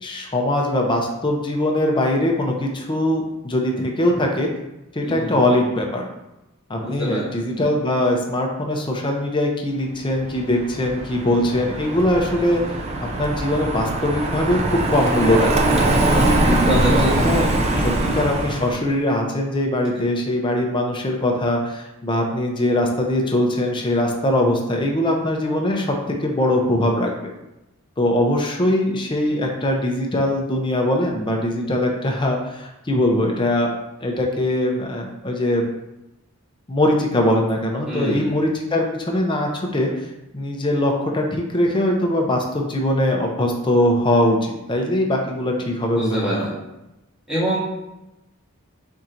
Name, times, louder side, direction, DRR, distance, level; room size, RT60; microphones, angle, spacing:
voice 1, 0.0-4.5 4.9-6.1 6.7-12.6 13.0-15.5 16.5-27.3 28.0-33.7 34.0-35.7 36.7-46.5, left 1 dB, 20° left, 1 dB, 0.5 m, -21 dB
voice 2, 5.0-5.4 6.8-7.3 16.6-17.1 37.9-38.4 45.9-46.5 47.3-47.6, equal, 5° right, -9 dB, 1.2 m, -25 dB
Car passing by, 10.3-18.8, right 2 dB, 30° right, 0.5 m, -22 dB
4.4 x 4.2 x 2.5 m, 0.96 s
head